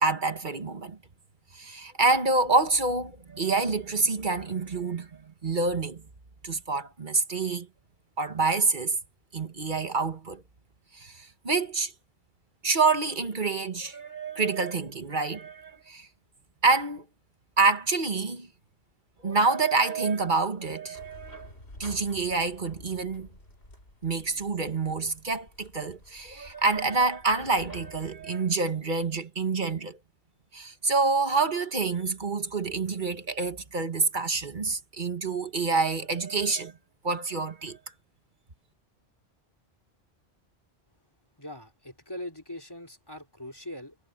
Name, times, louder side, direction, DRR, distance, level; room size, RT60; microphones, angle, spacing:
voice 1, 0.0-1.0 1.5-6.0 6.4-7.7 8.2-9.0 9.3-10.4 10.9-11.9 12.6-16.1 16.6-17.1 17.6-18.5 19.2-21.5 21.8-23.3 24.0-30.0 30.5-36.7 37.0-37.8, right 3 dB, 50° right, 1.6 m, -27 dB
sound 1, 20.9-28.3, left 1 dB, 80° left, 6.0 m, -50 dB
voice 2, 41.4-44.0, left 1 dB, 20° left, 3.2 m, -41 dB
omnidirectional pair, 1.1 m